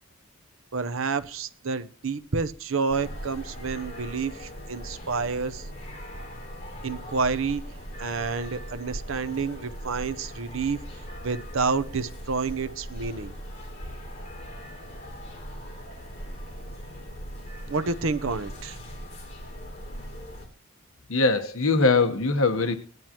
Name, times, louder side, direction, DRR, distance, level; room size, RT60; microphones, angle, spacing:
voice 1, 0.7-5.7 6.8-7.6 8.0-13.3 17.7-18.8, right 4 dB, 65° right, 0.8 m, -29 dB
sound 1, 2.9-20.5, equal, 30° left, 3.3 m, -40 dB
voice 2, 21.1-22.8, left 3 dB, 70° left, 1.2 m, -22 dB
18.5 x 11.0 x 3.0 m
head